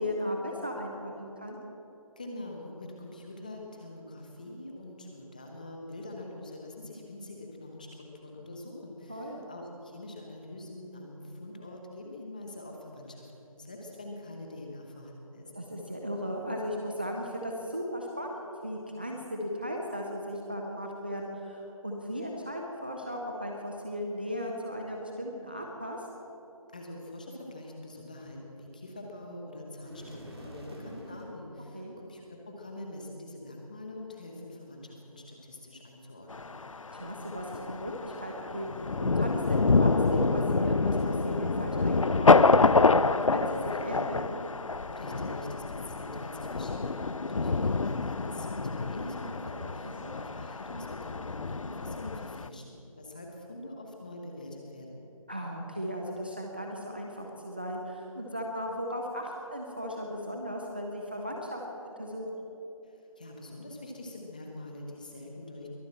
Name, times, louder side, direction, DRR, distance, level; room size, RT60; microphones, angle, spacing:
voice 1, 0.0-1.6 9.1-9.4 15.5-26.1 31.7-31.9 36.9-44.2 50.0-50.2 55.3-62.3, equal, 15° right, -1 dB, 0.6 m, -36 dB
voice 2, 2.2-15.5 26.7-36.5 44.9-55.1 62.8-65.7, left 1 dB, 15° left, 0 dB, 1.0 m, -44 dB
sound 1, 29.8-31.4, equal, 45° right, 2.9 m, -46 dB
Thunder, 36.3-52.5, left 3 dB, 65° left, 0.5 m, -27 dB
22.0 x 7.9 x 7.5 m, 3.0 s
figure-of-eight pair, 170°, 18 cm